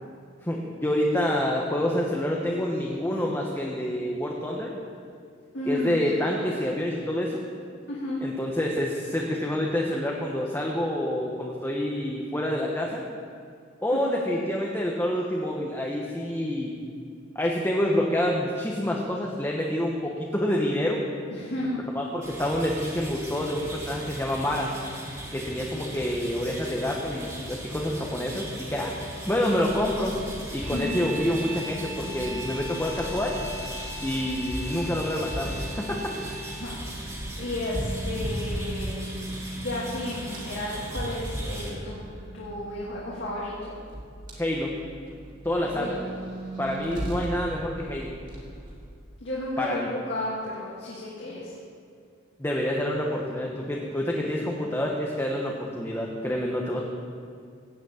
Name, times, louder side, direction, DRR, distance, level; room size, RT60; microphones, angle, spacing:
voice 1, 0.4-4.8 5.6-7.4 8.2-13.0 13.8-16.7 17.3-21.0 21.9-24.7 25.3-28.9 29.3-30.1 30.5-33.4 34.0-36.0 44.4-44.8 45.4-46.0 46.6-48.1 49.6-49.9 52.4-56.8, left 1 dB, 10° left, -2 dB, 1.1 m, -27 dB
voice 2, 5.5-6.5 7.9-8.2 13.9-14.2 21.3-21.8 30.6-31.1 36.6-39.0 39.6-42.0 42.3-43.7 45.7-46.0 49.2-51.5, left 1 dB, 60° left, -6 dB, 2.5 m, -33 dB
sound 1, 22.2-41.7, right 1 dB, 15° right, 2.8 m, -39 dB
sound 2, 29.6-48.9, right 1 dB, 40° right, 3.5 m, -38 dB
sound 3, 30.6-36.8, equal, 85° right, 2.2 m, -40 dB
16.0 x 6.2 x 9.0 m, 2.2 s
head